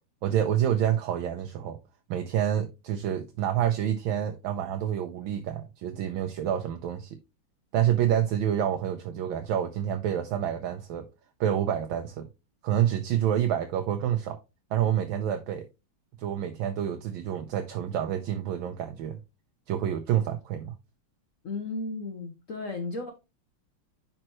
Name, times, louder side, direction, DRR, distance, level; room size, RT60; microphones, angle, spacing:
voice 1, 0.2-1.8 2.1-7.2 7.7-11.1 11.4-12.3 12.6-14.4 14.7-15.7 16.2-19.2 19.7-20.7, right 10 dB, 75° right, 1.4 m, -28 dB
voice 2, 21.4-23.1, left 3 dB, 50° left, 1.0 m, -34 dB
9.9 x 4.3 x 3.0 m
omnidirectional pair, 2.4 m